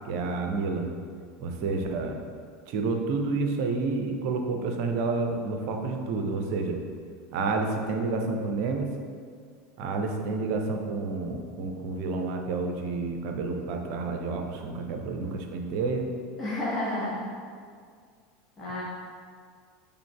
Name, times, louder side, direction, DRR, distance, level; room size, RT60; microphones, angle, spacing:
voice 1, 0.0-0.9 1.4-2.2 2.7-6.8 7.3-8.9 9.8-16.1, right 3 dB, 55° right, 3 dB, 0.5 m, -29 dB
voice 2, 16.4-17.2 18.6-18.8, left 1 dB, 20° left, -8 dB, 0.9 m, -30 dB
6.0 x 3.3 x 2.2 m, 2.1 s
figure-of-eight pair, 75°, 0 cm